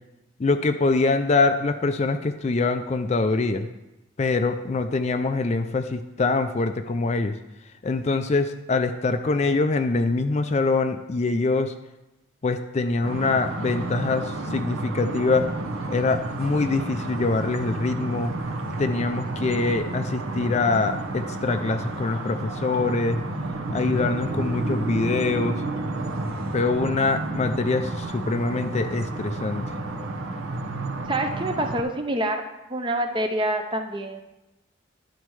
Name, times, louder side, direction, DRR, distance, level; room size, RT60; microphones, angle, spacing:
voice 1, 0.4-3.7 4.2-7.4 7.8-11.7 12.4-15.5 15.9-18.3 18.8-23.2 23.7-25.6 26.5-29.6, left 3 dB, 35° left, 8 dB, 0.4 m, -24 dB
sound 1, 13.0-31.8, right 2 dB, 80° right, 0.9 m, -31 dB
voice 2, 31.1-32.4 32.7-34.2, right 1 dB, 25° right, 5 dB, 0.6 m, -26 dB
11.5 x 4.3 x 4.7 m, 0.98 s
head